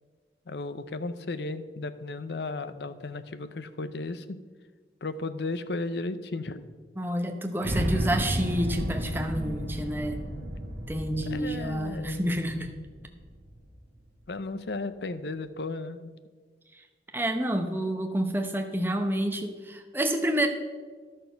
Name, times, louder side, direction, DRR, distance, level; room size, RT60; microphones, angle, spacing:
voice 1, 0.5-4.4 5.0-6.6 11.3-12.2 14.3-16.1, left 3 dB, 75° left, 12 dB, 0.6 m, -35 dB
voice 2, 7.0-10.2 10.9-12.7 16.7-16.8 17.1-20.5, right 1 dB, 10° right, 5 dB, 0.8 m, -29 dB
sound 1, 7.6-13.7, equal, 70° right, 1.4 m, -33 dB
11.5 x 6.5 x 5.7 m, 1.5 s
head